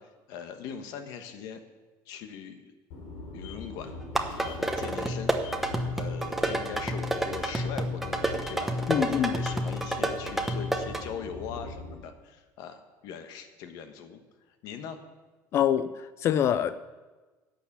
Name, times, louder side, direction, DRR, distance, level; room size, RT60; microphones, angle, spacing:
voice 1, 0.0-1.6 2.1-2.7 3.3-3.9 4.4-5.3 5.6-14.2 14.6-15.0, left 7 dB, 60° left, 8 dB, 1.3 m, -41 dB
sound 1, 2.9-12.0, left 2 dB, 85° left, 3.4 m, -42 dB
sound 2, 4.0-11.0, right 1 dB, 5° right, 0.9 m, -30 dB
voice 2, 8.9-9.4 15.5-16.8, left 9 dB, 40° left, 14 dB, 0.4 m, -25 dB
11.5 x 7.3 x 8.4 m, 1.3 s
cardioid pair, 155°, 7 cm